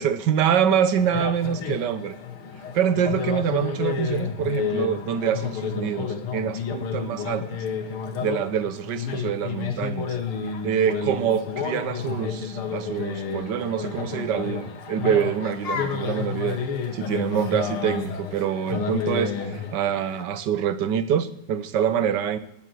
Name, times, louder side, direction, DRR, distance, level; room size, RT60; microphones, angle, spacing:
voice 1, 0.0-2.2 2.7-7.6 8.2-10.2 10.6-16.6 16.9-22.4, right 8 dB, 60° right, 14 dB, 1.4 m, -25 dB
sound 1, 1.0-20.2, left 6 dB, 90° left, 2.4 m, -31 dB
18.5 x 8.1 x 7.7 m, 0.82 s
omnidirectional pair, 2.3 m